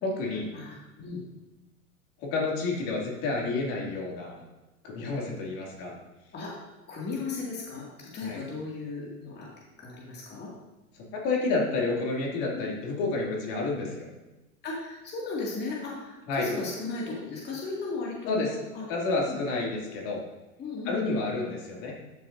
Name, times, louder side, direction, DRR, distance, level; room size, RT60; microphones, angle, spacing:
voice 1, 0.0-0.5 2.2-4.4 4.8-5.9 8.2-8.4 11.1-14.1 16.3-16.5 18.3-18.6 18.9-20.2 20.8-21.9, left 3 dB, 45° left, -2 dB, 2.6 m, -29 dB
voice 2, 0.5-1.2 6.3-6.5 6.9-9.5 9.8-10.5 12.5-12.7 14.6-18.9 19.3-19.4 20.6-21.0, left 3 dB, 20° left, -4 dB, 2.3 m, -35 dB
12.5 x 6.6 x 2.7 m, 1.1 s
hypercardioid pair, 110°, 45 cm